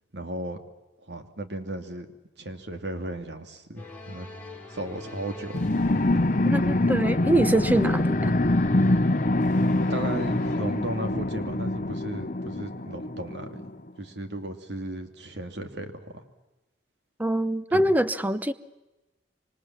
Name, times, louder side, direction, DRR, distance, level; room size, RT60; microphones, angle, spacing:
voice 1, 0.1-0.6 1.0-2.1 2.4-4.3 4.7-6.2 9.9-13.7 14.0-16.2 17.7-17.9, right 1 dB, 75° right, 7 dB, 2.6 m, -35 dB
sound 1, 3.8-10.6, left 1 dB, 10° left, 4.4 m, -42 dB
sound 2, 5.5-13.7, left 2 dB, 45° left, 0.9 m, -25 dB
voice 2, 6.4-8.3 17.2-18.5, right 1 dB, 10° right, 13 dB, 0.9 m, -24 dB
26.0 x 25.0 x 7.3 m, 1.0 s
head